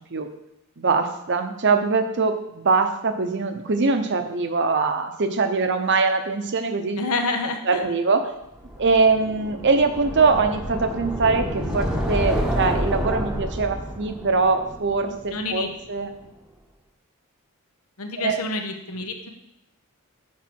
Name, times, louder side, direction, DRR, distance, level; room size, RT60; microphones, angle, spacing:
voice 1, 0.8-7.0 7.7-8.2 8.8-16.1 18.2-18.4, right 4 dB, 55° right, 7 dB, 0.8 m, -22 dB
voice 2, 7.0-7.8 15.3-15.7 18.0-19.3, left 3 dB, 80° left, 5 dB, 1.0 m, -28 dB
sound 1, 8.6-15.6, equal, 5° right, 0.9 m, -29 dB
7.4 x 4.8 x 6.1 m, 0.84 s
head